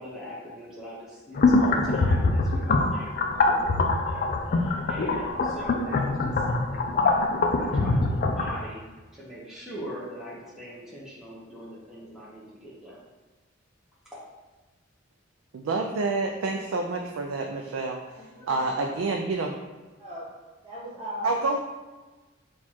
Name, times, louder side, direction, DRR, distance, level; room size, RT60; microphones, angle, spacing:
voice 1, 0.0-8.8 9.1-13.0 14.0-14.3 16.9-17.2, equal, 5° right, -9 dB, 0.8 m, -42 dB
sound 1, 1.4-8.6, left 3 dB, 45° left, 0.4 m, -24 dB
voice 2, 15.5-18.0 18.5-19.5 21.2-21.6, right 3 dB, 90° right, 2 dB, 0.4 m, -28 dB
voice 3, 18.0-18.9 20.0-20.3 20.6-21.3, equal, 30° right, -13 dB, 1.2 m, -39 dB
4.4 x 2.4 x 4.2 m, 1.2 s
head